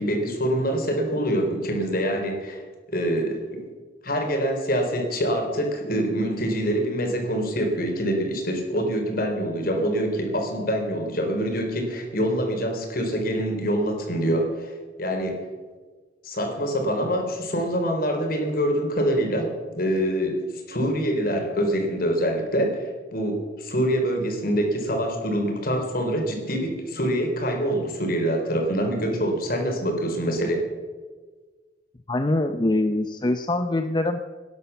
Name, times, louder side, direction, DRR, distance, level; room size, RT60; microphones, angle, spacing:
voice 1, 0.0-2.6 2.9-3.6 4.0-15.4 16.2-20.3 20.7-30.7, equal, 55° left, 3 dB, 4.0 m, -25 dB
voice 2, 32.1-34.2, left 2 dB, 25° left, 7 dB, 0.6 m, -23 dB
18.5 x 10.5 x 6.9 m, 1.4 s
head